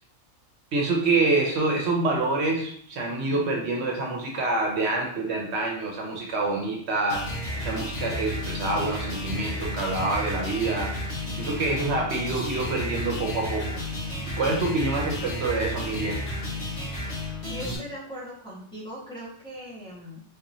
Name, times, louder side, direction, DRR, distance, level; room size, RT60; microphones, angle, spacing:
voice 1, 0.7-10.9 11.4-13.8 14.4-16.2, right 2 dB, 70° right, -1 dB, 0.9 m, -26 dB
sound 1, 7.1-17.8, left 1 dB, 65° left, 1.4 m, -32 dB
voice 2, 17.5-20.2, equal, 5° left, -8 dB, 1.2 m, -39 dB
3.8 x 2.9 x 2.6 m, 0.62 s
omnidirectional pair, 1.2 m